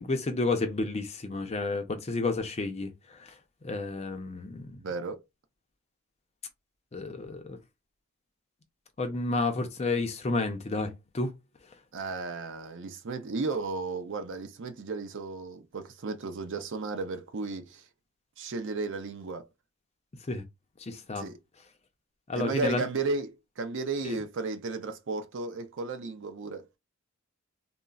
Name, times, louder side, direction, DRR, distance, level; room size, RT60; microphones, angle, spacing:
voice 1, 0.0-3.2 3.6-4.8 6.9-7.6 9.0-11.3 20.3-20.4 20.8-21.3 22.3-22.8 24.0-24.2, left 3 dB, 30° left, 0.5 m, -31 dB
voice 2, 4.8-5.2 11.9-17.8 18.4-19.5 21.2-21.4 22.3-26.7, right 3 dB, 60° right, 0.5 m, -34 dB
3.8 x 2.0 x 2.3 m
head